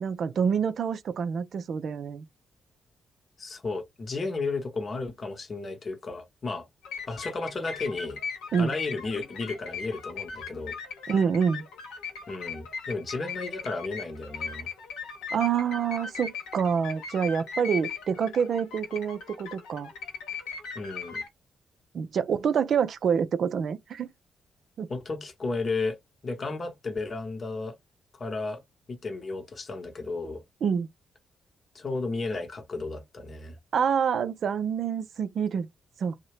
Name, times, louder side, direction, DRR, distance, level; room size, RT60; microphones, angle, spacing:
voice 1, 0.0-2.3 8.5-8.8 11.1-11.6 15.3-19.9 21.9-24.1 24.8-24.9 30.6-30.9 33.7-35.7 36.0-36.2, right 7 dB, 60° right, 0.3 m, -27 dB
voice 2, 3.4-6.7 7.1-8.2 8.6-10.7 12.3-14.7 20.7-21.2 24.9-26.0 26.2-27.8 28.2-28.6 28.9-30.4 31.7-33.6, left 3 dB, 45° left, 0.8 m, -33 dB
sound 1, 6.8-21.3, left 6 dB, 75° left, 0.8 m, -39 dB
2.7 x 2.0 x 3.1 m
hypercardioid pair, 40°, 0 cm